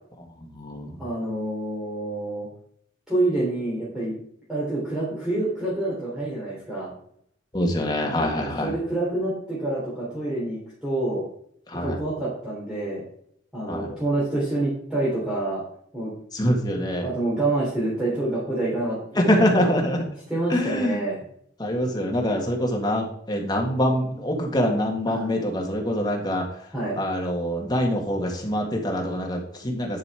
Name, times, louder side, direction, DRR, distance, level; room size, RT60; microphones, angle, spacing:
voice 1, 0.4-1.0 7.5-8.8 11.7-12.0 13.7-13.9 16.3-17.1 19.2-20.0 20.5-21.0 21.6-26.5 26.9-30.0, equal, 25° left, 1 dB, 1.8 m, -24 dB
voice 2, 1.0-2.5 3.1-4.1 4.5-6.9 8.3-11.2 11.8-13.0 13.5-15.6 15.9-16.1 17.0-19.0 19.2-19.7 20.3-21.2 25.0-25.3 26.7-27.0, right 2 dB, 5° right, -8 dB, 3.2 m, -27 dB
10.5 x 5.4 x 4.8 m, 0.67 s
head